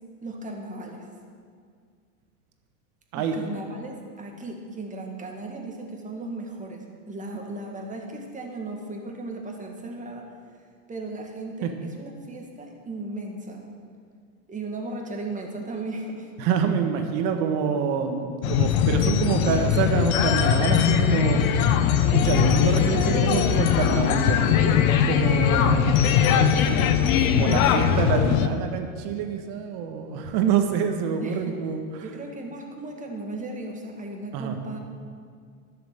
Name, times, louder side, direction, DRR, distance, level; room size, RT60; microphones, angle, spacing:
voice 1, 0.2-1.1 3.1-10.3 10.9-13.8 14.5-16.3 26.3-27.0 27.3-27.9 31.2-31.6 32.0-34.8, right 2 dB, 15° right, 1 dB, 1.9 m, -36 dB
voice 2, 16.4-21.4 22.1-26.1 27.4-31.8 34.3-34.6, right 7 dB, 50° right, 6 dB, 1.6 m, -26 dB
sound 1, 18.4-28.5, left 8 dB, 65° left, 1.0 m, -20 dB
12.0 x 6.8 x 7.9 m, 2.1 s
hypercardioid pair, 110°, 45 cm